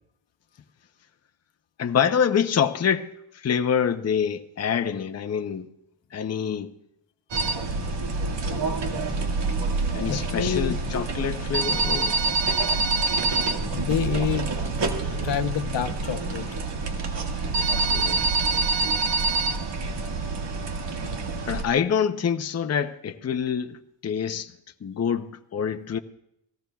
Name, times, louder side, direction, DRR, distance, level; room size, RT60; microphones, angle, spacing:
voice 1, 1.8-3.1 3.4-5.7 6.1-6.7 9.9-12.1 15.0-15.3 17.4-18.2 21.5-23.8 24.0-24.5 24.8-26.0, left 7 dB, 35° left, 0.6 m, -26 dB
sound 1, 7.3-21.6, right 3 dB, 70° right, 1.9 m, -26 dB
voice 2, 10.1-10.8 13.7-14.5 14.8-14.9 15.2-16.5, left 8 dB, 75° left, 0.9 m, -27 dB
29.5 x 18.5 x 2.3 m
wide cardioid pair, 175°, 44 cm